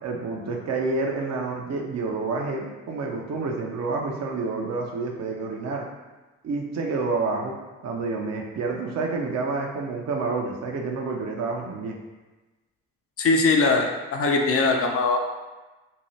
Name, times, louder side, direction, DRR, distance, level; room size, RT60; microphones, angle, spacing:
voice 1, 0.0-5.9 6.4-7.5 7.8-11.9, right 3 dB, 50° right, 0 dB, 0.7 m, -28 dB
voice 2, 13.2-15.2, left 3 dB, 40° left, 1 dB, 0.5 m, -21 dB
2.7 x 2.2 x 3.1 m, 1.2 s
hypercardioid pair, 50°, 36 cm